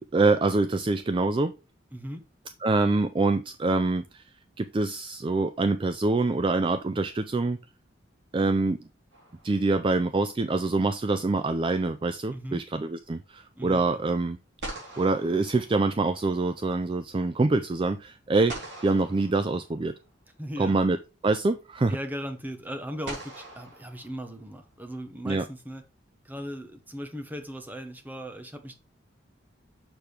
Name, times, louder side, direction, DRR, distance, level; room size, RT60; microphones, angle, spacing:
voice 1, 0.1-1.6 2.6-4.2 4.6-7.6 8.3-8.8 9.4-14.4 15.0-18.5 18.8-19.9 20.6-21.0 21.2-22.0 25.3-25.4, right 3 dB, 25° right, 0.4 m, -25 dB
voice 2, 1.9-2.2 12.3-12.6 13.6-13.9 20.4-20.8 21.9-25.8 26.2-28.7, equal, 10° right, 0.9 m, -38 dB
sound 1, 9.1-10.0 14.1-14.2 14.6-16.3 18.5-20.1 21.4-21.5 23.0-24.7, right 2 dB, 65° right, 3.3 m, -43 dB
6.7 x 6.0 x 3.3 m
head